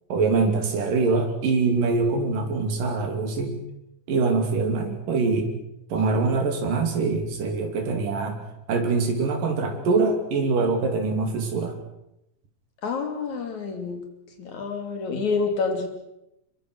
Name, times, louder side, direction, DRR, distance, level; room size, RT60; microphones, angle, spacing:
voice 1, 0.1-3.6 4.1-5.6 5.9-8.4 8.7-11.8, right 4 dB, 70° right, 5 dB, 4.5 m, -24 dB
voice 2, 12.8-14.0 14.4-15.9, left 4 dB, 60° left, 5 dB, 4.2 m, -28 dB
25.5 x 22.0 x 6.3 m, 0.86 s
omnidirectional pair, 3.9 m